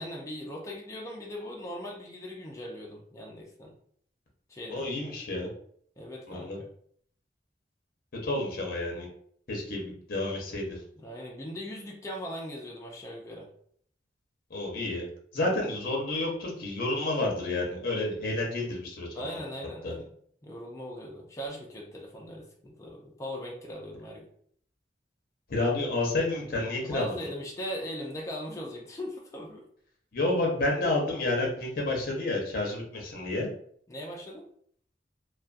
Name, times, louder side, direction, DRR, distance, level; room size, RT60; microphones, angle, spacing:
voice 1, 0.0-3.7 4.5-4.9 6.0-6.7 11.0-13.5 19.1-20.1 20.4-24.3 26.8-29.6 33.9-34.5, equal, 15° left, -1 dB, 0.4 m, -39 dB
voice 2, 4.7-5.5 6.3-6.6 8.2-9.1 9.5-10.8 14.5-15.0 15.3-19.4 19.8-19.9 25.5-27.2 30.1-33.5, left 2 dB, 55° left, 0 dB, 0.7 m, -30 dB
2.4 x 2.2 x 2.4 m, 0.63 s
head